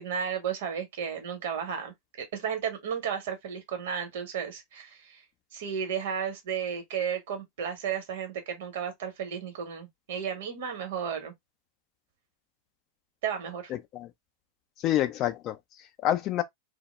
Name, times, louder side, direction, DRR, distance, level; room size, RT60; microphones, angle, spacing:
voice 1, 0.0-5.2 5.5-11.3 13.2-13.7, right 7 dB, 55° right, 0.9 m, -33 dB
voice 2, 13.7-14.1 14.8-16.4, left 12 dB, 35° left, 0.4 m, -28 dB
2.0 x 2.0 x 3.1 m
figure-of-eight pair, 90°, 0 cm